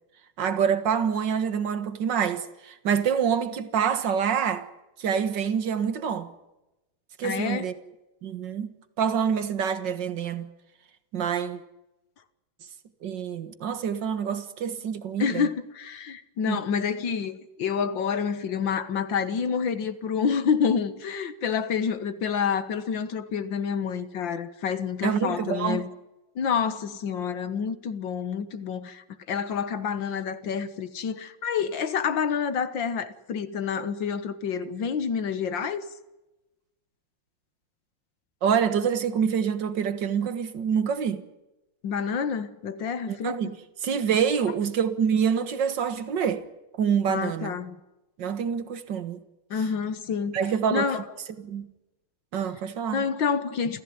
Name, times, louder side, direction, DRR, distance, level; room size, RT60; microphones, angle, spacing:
voice 1, 0.4-4.7 5.0-6.3 7.2-7.7 8.2-10.5 11.1-11.6 13.0-15.5 16.5-16.6 25.0-25.8 38.4-41.2 43.1-46.5 46.8-47.6 48.2-49.2 50.3-50.9 51.4-51.7 52.3-53.0, right 7 dB, 60° right, 2.1 m, -26 dB
voice 2, 7.2-7.7 15.2-25.9 26.4-35.8 41.8-43.4 47.1-47.8 49.5-50.4 50.7-51.0 52.9-53.8, left 6 dB, 65° left, 2.0 m, -28 dB
28.5 x 15.0 x 9.5 m
omnidirectional pair, 2.3 m